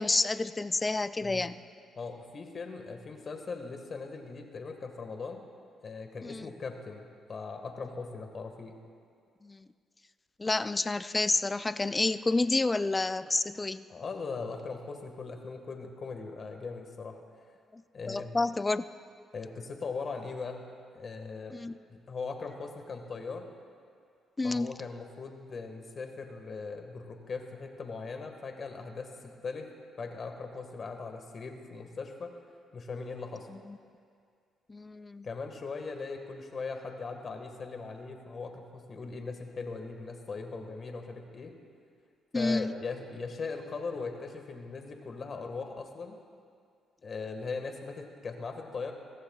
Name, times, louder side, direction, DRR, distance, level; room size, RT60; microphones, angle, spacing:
voice 1, 0.0-1.6 6.2-6.5 9.4-9.7 10.4-13.8 17.7-17.8 18.1-18.8 21.5-21.8 24.4-24.7 33.5-33.8 34.7-35.3 42.3-42.7, left 3 dB, 20° left, 14 dB, 0.4 m, -29 dB
voice 2, 2.0-5.4 5.8-8.8 13.9-17.2 17.9-18.3 19.3-20.6 20.9-21.6 21.9-23.5 24.4-29.7 30.0-32.3 32.7-33.5 35.2-41.5 42.3-46.2 47.0-48.9, left 4 dB, 45° left, 4 dB, 1.6 m, -39 dB
22.0 x 16.0 x 2.4 m, 2.2 s
cardioid pair, 90°, 0 cm